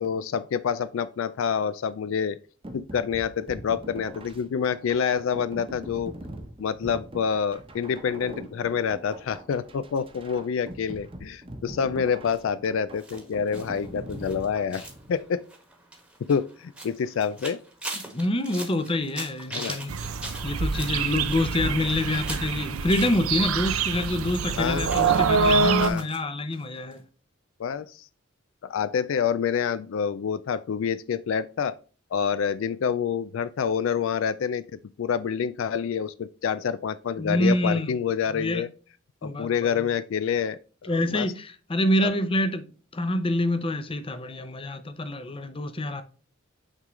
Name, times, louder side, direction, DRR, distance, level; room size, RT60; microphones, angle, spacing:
voice 1, 0.0-2.4 2.7-6.1 6.6-15.4 16.3-17.6 19.5-19.8 24.6-24.9 25.8-26.1 27.6-28.1 28.6-31.8 32.1-34.6 35.0-38.7 39.2-41.3 42.0-42.1, left 7 dB, 70° left, 0.3 m, -27 dB
sound 1, 2.6-15.2, right 1 dB, 25° right, 0.9 m, -42 dB
sound 2, 13.0-23.8 24.1-26.2 26.5-26.6 26.9-27.0, right 2 dB, 5° right, 1.2 m, -41 dB
voice 2, 18.1-19.9 20.4-27.0 37.2-37.9 38.3-38.6 39.2-39.8 40.9-42.6 42.9-46.0, left 1 dB, 25° left, 0.6 m, -26 dB
sound 3, 19.9-25.9, right 5 dB, 90° right, 0.6 m, -25 dB
8.8 x 3.7 x 3.1 m
head